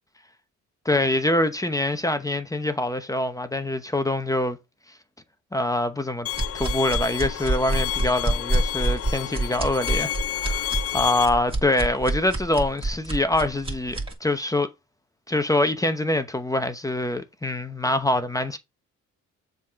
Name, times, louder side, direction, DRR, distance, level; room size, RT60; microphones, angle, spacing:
voice 1, 0.8-4.6 5.5-6.3 6.5-14.7 15.3-18.6, left 1 dB, 10° left, 0.9 m, -25 dB
Bowed string instrument, 6.3-11.3, left 13 dB, 50° left, 0.6 m, -30 dB
sound 1, 6.3-14.1, right 2 dB, 20° right, 2.5 m, -27 dB
7.2 x 4.0 x 5.1 m
cardioid pair, 90°, 30 cm